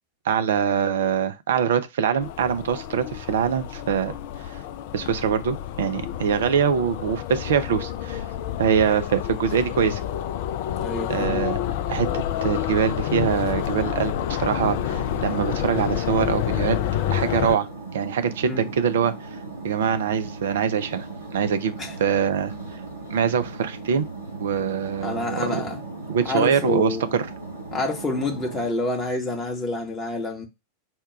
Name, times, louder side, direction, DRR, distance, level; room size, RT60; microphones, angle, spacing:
voice 1, 0.2-4.1 4.9-8.2 8.6-10.0 11.1-11.6 11.9-16.8 17.1-17.7 17.9-19.1 19.6-21.1 21.3-21.7 22.0-22.5 23.1-24.1 24.4-25.6 26.1-27.3, right 7 dB, 60° right, 0.5 m, -23 dB
sound 1, 2.2-17.6, left 11 dB, 50° left, 0.3 m, -29 dB
voice 2, 10.8-11.4 18.4-18.7 21.8-21.9 25.0-25.8 26.2-27.2 27.7-30.5, left 2 dB, 15° left, 0.9 m, -28 dB
sound 2, 14.6-28.7, right 3 dB, 80° right, 1.7 m, -38 dB
4.3 x 2.2 x 4.7 m
figure-of-eight pair, 90°, 0 cm